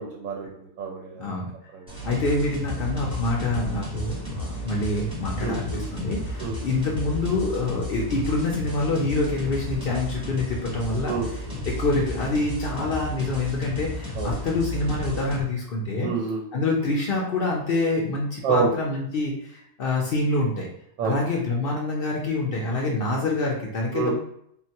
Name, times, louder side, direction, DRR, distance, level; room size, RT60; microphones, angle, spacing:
voice 1, 0.0-1.3 1.7-1.9 5.4-5.8 6.4-6.6 11.1-11.6 14.2-14.4 16.0-16.4 18.4-18.7 21.0-21.2 23.9-24.1, right 5 dB, 75° right, -1 dB, 1.0 m, -28 dB
voice 2, 1.1-1.5 2.0-11.2 11.7-16.1 16.5-20.7 21.0-24.1, left 2 dB, 60° left, -2 dB, 0.6 m, -26 dB
sound 1, 1.9-15.4, left 1 dB, 5° right, 0.8 m, -33 dB
3.8 x 2.1 x 2.8 m, 0.71 s
omnidirectional pair, 1.6 m